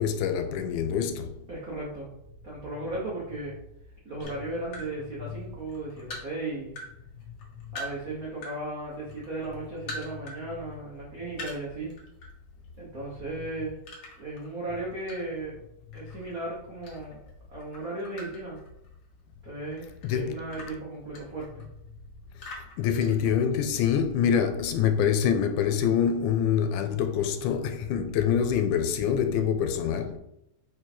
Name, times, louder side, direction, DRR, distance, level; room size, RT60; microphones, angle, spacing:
voice 1, 0.0-1.4 20.0-20.4 22.8-30.2, left 8 dB, 85° left, 2.1 m, -25 dB
voice 2, 1.5-2.1 2.4-3.6 4.0-6.7 7.7-11.9 12.8-13.8 14.2-15.6 15.9-17.2 17.5-18.6 19.4-21.7, right 2 dB, 50° right, 1.0 m, -36 dB
sound 1, 4.2-4.9 5.4-6.9 7.2-8.6 8.9-10.4 10.7-10.8 11.3-12.3 12.6-12.9 13.8-15.5 15.9-17.3 17.6-19.2 19.7-21.8 22.3-23.7, left 1 dB, 50° left, 1.3 m, -42 dB
4.7 x 4.7 x 4.4 m
omnidirectional pair, 3.5 m